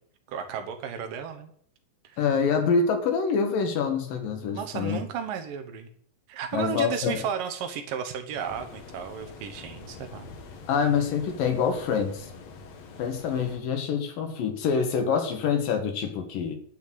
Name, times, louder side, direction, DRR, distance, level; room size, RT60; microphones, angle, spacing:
voice 1, 0.3-1.5 2.1-2.2 4.5-5.9 6.3-10.3, right 8 dB, 85° right, 7 dB, 2.9 m, -34 dB
voice 2, 2.2-5.0 6.5-7.2 10.7-12.3 13.0-16.6, left 6 dB, 85° left, 5 dB, 3.3 m, -26 dB
sound 1, 8.3-13.6, left 4 dB, 60° left, 2.4 m, -45 dB
10.5 x 6.3 x 7.6 m, 0.63 s
omnidirectional pair, 3.8 m